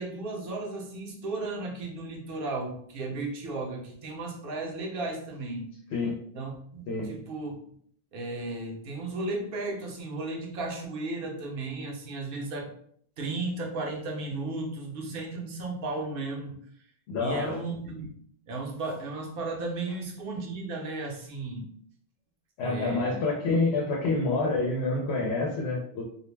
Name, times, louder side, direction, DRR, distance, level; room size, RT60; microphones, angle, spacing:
voice 1, 0.0-5.7 6.3-7.5 8.1-12.7 13.2-16.6 17.2-18.1 18.5-21.7 22.6-23.2, right 2 dB, 65° right, 1 dB, 0.8 m, -34 dB
voice 2, 17.1-17.6 22.6-26.0, left 3 dB, 85° left, -1 dB, 0.9 m, -27 dB
2.5 x 2.1 x 3.1 m, 0.62 s
omnidirectional pair, 1.1 m